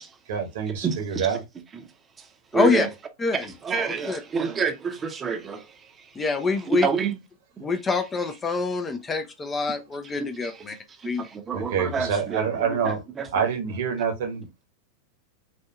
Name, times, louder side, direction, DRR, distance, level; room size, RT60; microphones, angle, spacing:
voice 1, 0.3-1.4 11.5-13.0 13.3-14.6, right 6 dB, 55° right, 1.1 m, -26 dB
voice 2, 0.8-1.4 1.7-1.9 2.2-2.3 2.5-2.9 3.3-6.1 6.7-7.2 7.6-7.7 10.2-13.5, right 5 dB, 20° right, 0.7 m, -29 dB
voice 3, 2.5-2.9 3.2-3.4 4.1-4.2 6.2-6.9 7.6-10.8 11.0-11.2, left 4 dB, 15° left, 0.5 m, -25 dB
4.3 x 2.7 x 2.3 m
figure-of-eight pair, 90°, 0 cm